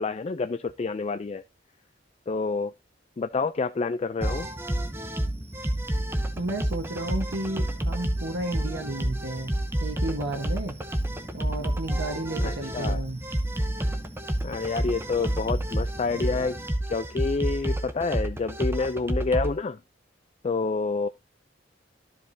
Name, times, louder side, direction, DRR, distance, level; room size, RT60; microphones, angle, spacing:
voice 1, 0.0-1.4 2.3-2.7 3.2-4.5 12.4-13.0 14.4-16.6 16.9-19.8 20.4-21.1, left 4 dB, 35° left, 0.3 m, -28 dB
sound 1, 4.2-19.5, right 1 dB, 15° right, 0.7 m, -29 dB
voice 2, 6.4-9.5 9.8-10.7 11.3-13.2, right 2 dB, 75° right, 1.2 m, -32 dB
13.0 x 5.1 x 2.7 m
head